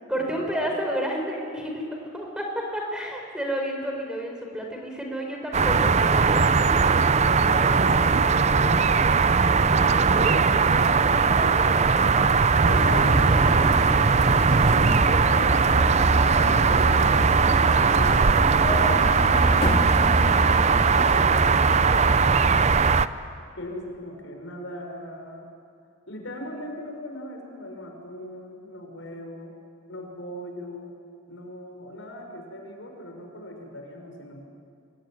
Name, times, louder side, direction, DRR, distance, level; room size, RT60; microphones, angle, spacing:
voice 1, 0.1-6.8 9.8-12.7, equal, 5° right, 1 dB, 4.5 m, -32 dB
sound 1, 5.5-23.1, right 5 dB, 35° right, 0.6 m, -19 dB
voice 2, 7.4-9.1 12.7-13.6 15.2-19.0 20.7-22.7 23.6-25.5 26.1-29.5 29.9-30.9 31.3-34.4, left 1 dB, 75° left, 3 dB, 5.8 m, -39 dB
sound 2, 12.7-21.2, left 1 dB, 25° left, 2.4 m, -31 dB
25.5 x 22.5 x 9.8 m, 2.3 s
head